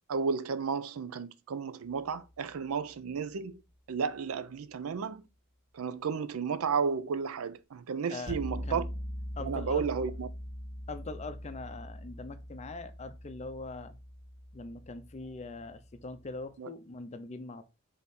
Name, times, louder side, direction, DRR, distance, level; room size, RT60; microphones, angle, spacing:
voice 1, 0.1-3.6 3.9-5.2 5.7-8.9 9.4-10.3 16.6-16.7, right 5 dB, 75° right, 0.4 m, -33 dB
sound 1, 1.9-2.4 8.3-16.4, equal, 5° right, 1.6 m, -42 dB
voice 2, 9.4-9.8 10.9-14.0 14.5-17.6, left 3 dB, 30° left, 0.5 m, -42 dB
3.6 x 3.6 x 4.1 m
head